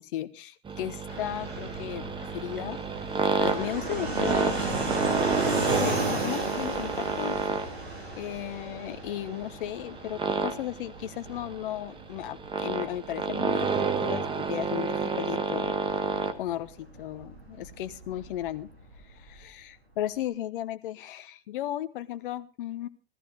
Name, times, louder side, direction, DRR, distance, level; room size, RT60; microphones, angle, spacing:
voice 1, 0.0-3.0 3.4-4.8 5.7-7.4 8.2-15.8 16.4-18.7 19.1-22.9, left 12 dB, 55° left, 13 dB, 1.1 m, -35 dB
sound 1, 0.7-16.3, right 5 dB, 15° right, 1.4 m, -30 dB
Fixed-wing aircraft airplane, 1.1-19.4, right 2 dB, 85° right, 3.5 m, -36 dB
17.0 x 14.5 x 3.8 m, 0.34 s
figure-of-eight pair, 95°, 31 cm